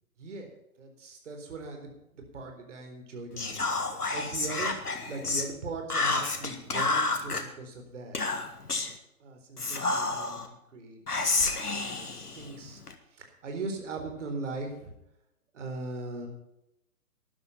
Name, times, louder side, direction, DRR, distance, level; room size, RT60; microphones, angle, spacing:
voice 1, 0.2-0.5 0.8-8.2 9.2-10.4 10.7-11.0 11.8-12.8 13.1-14.9 15.5-16.3, right 3 dB, 50° right, 3 dB, 4.1 m, -39 dB
Whispering, 3.4-5.5 5.9-7.4 8.1-9.0 9.6-10.5 11.1-12.9, left 3 dB, 80° left, 2.0 m, -30 dB
13.0 x 11.0 x 5.6 m, 0.84 s
figure-of-eight pair, 135°, 45 cm